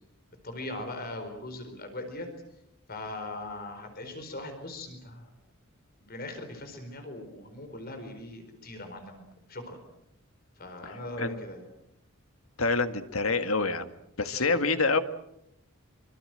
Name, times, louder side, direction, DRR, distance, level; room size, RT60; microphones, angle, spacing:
voice 1, 0.4-2.3 2.9-5.3 6.1-9.8 10.6-11.6 14.3-14.5, left 2 dB, 45° left, 7 dB, 4.5 m, -40 dB
voice 2, 12.6-13.9 14.2-15.0, left 3 dB, 80° left, 9 dB, 1.9 m, -26 dB
25.0 x 24.5 x 7.7 m, 0.80 s
head